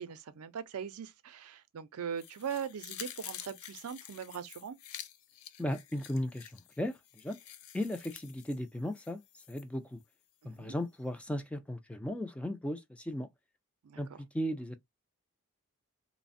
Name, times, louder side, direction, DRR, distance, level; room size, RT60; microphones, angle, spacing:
voice 1, 0.0-4.8 10.4-10.7 13.8-14.2, right 7 dB, 80° right, 0.4 m, -40 dB
sound 1, 2.2-9.6 10.0-10.1, left 11 dB, 70° left, 0.4 m, -49 dB
voice 2, 5.6-7.4 7.7-9.2 9.5-10.0 10.4-13.3 14.0-14.8, left 1 dB, 5° left, 0.3 m, -36 dB
3.2 x 2.0 x 2.5 m
head